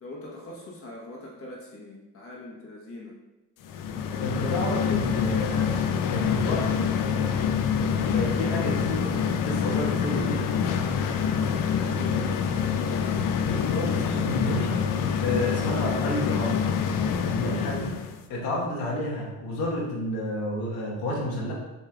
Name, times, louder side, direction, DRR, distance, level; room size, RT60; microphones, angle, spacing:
voice 1, 0.0-3.1 11.9-12.3, left 2 dB, 40° left, -3 dB, 1.1 m, -42 dB
sound 1, 3.6-18.2, left 7 dB, 65° left, 0.5 m, -26 dB
voice 2, 4.2-5.9 6.1-6.9 8.1-10.5 13.4-14.8 15.2-16.7 17.3-18.0 18.3-21.5, left 1 dB, 85° left, -3 dB, 1.4 m, -30 dB
6.5 x 3.2 x 2.3 m, 1.0 s
cardioid pair, 120°, 36 cm